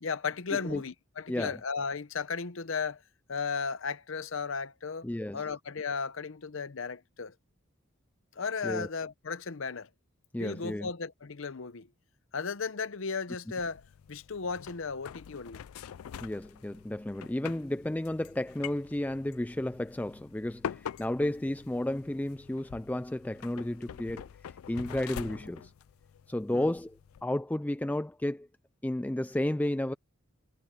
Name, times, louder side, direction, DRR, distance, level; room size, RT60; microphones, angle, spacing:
voice 1, 0.0-3.0 3.3-5.1 5.3-7.3 8.4-9.9 10.4-11.9 12.3-13.8 14.1-15.6 26.5-26.6, left 5 dB, 65° left, 0.8 m, -35 dB
voice 2, 0.5-0.8 1.3-1.6 5.0-5.4 8.6-8.9 10.3-10.9 16.2-24.3 24.7-25.7 26.3-28.5 28.8-29.9, left 1 dB, 10° left, 0.3 m, -32 dB
sound 1, 13.6-27.2, left 8 dB, 90° left, 0.4 m, -45 dB
head